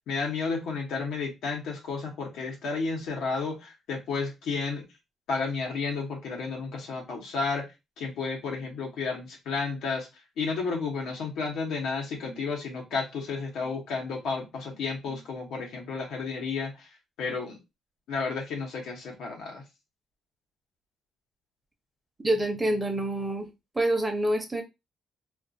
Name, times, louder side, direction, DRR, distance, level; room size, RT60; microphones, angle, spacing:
voice 1, 0.1-4.8 5.3-7.7 8.0-10.1 10.4-16.9 17.2-17.6 18.1-19.6, left 4 dB, 80° left, 1 dB, 1.0 m, -32 dB
voice 2, 22.2-23.5 23.7-24.6, right 1 dB, 15° right, 4 dB, 0.7 m, -26 dB
2.5 x 2.4 x 2.6 m, 0.24 s
cardioid pair, 90°, 0 cm